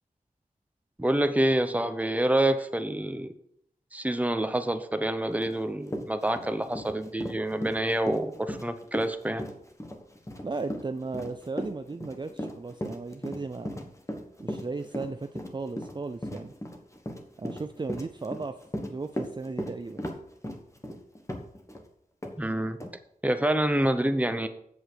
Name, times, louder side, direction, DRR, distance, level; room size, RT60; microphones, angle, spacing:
voice 1, 1.0-3.3 3.9-9.5 22.4-22.8 23.2-24.5, right 1 dB, 10° right, 9 dB, 0.9 m, -27 dB
Run, 5.5-5.6 5.9-21.8 22.2-22.4 22.8-22.9, equal, 20° left, 1.3 m, -37 dB
voice 2, 10.4-13.8 14.4-16.5 17.4-18.6 18.9-20.0, right 3 dB, 30° right, 8 dB, 0.5 m, -36 dB
8.2 x 7.1 x 6.8 m, 0.72 s
wide cardioid pair, 95°, 15 cm